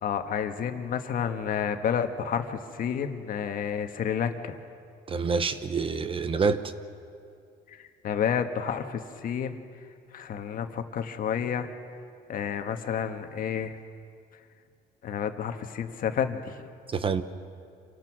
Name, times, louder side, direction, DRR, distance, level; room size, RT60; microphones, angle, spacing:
voice 1, 0.0-4.6 7.7-9.8 10.1-11.7 12.3-13.7 15.0-16.6, left 8 dB, 55° left, 7 dB, 1.5 m, -30 dB
voice 2, 5.1-6.6 16.9-17.2, right 5 dB, 30° right, 12 dB, 0.9 m, -26 dB
27.5 x 17.0 x 6.2 m, 2.3 s
cardioid pair, 110°, 17 cm